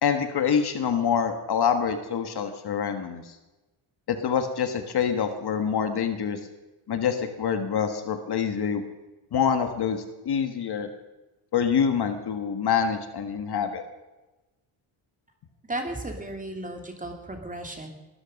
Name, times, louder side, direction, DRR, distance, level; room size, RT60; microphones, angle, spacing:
voice 1, 0.0-3.2 4.1-6.4 6.9-8.8 9.3-10.9 11.5-13.8, left 7 dB, 50° left, 8 dB, 1.6 m, -26 dB
voice 2, 15.7-17.9, right 1 dB, 15° right, 3 dB, 2.7 m, -34 dB
21.0 x 13.0 x 5.3 m, 1.1 s
cardioid pair, 130°, 49 cm